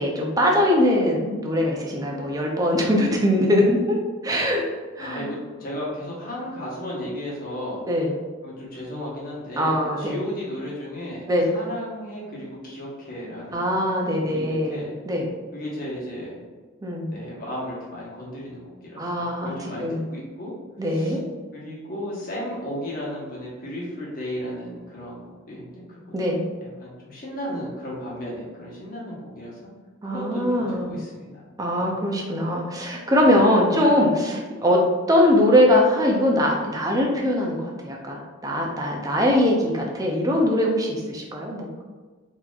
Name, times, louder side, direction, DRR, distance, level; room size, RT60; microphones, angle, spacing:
voice 1, 0.0-4.0 4.2-4.7 5.0-5.3 7.9-8.1 9.6-10.2 11.3-11.5 13.5-15.3 16.8-17.1 19.0-20.1 20.8-21.2 26.1-26.4 30.0-31.0 31.6-34.8 35.1-41.8, left 1 dB, 15° right, 0 dB, 0.4 m, -22 dB
voice 2, 5.0-7.8 8.4-13.7 14.2-14.9 15.5-16.4 17.1-20.5 20.9-21.2 21.5-26.0 26.3-29.6 30.0-31.4 31.8-31.9, equal, 45° left, -6 dB, 1.1 m, -34 dB
4.1 x 2.8 x 2.4 m, 1.4 s
head